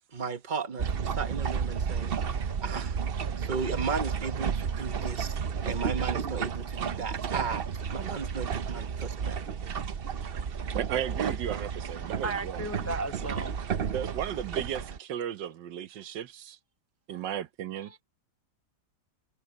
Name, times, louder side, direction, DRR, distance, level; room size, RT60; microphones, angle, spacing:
voice 1, 0.1-3.0 3.4-5.4 5.6-9.4, right 5 dB, 30° right, 1.1 m, -35 dB
sound 1, 0.8-15.0, right 7 dB, 50° right, 0.7 m, -32 dB
voice 2, 10.7-12.7 13.8-16.6 17.1-18.0, right 10 dB, 90° right, 1.6 m, -35 dB
voice 3, 12.2-13.5 17.1-17.2 17.8-18.0, right 2 dB, 15° left, 0.5 m, -35 dB
omnidirectional pair, 1.9 m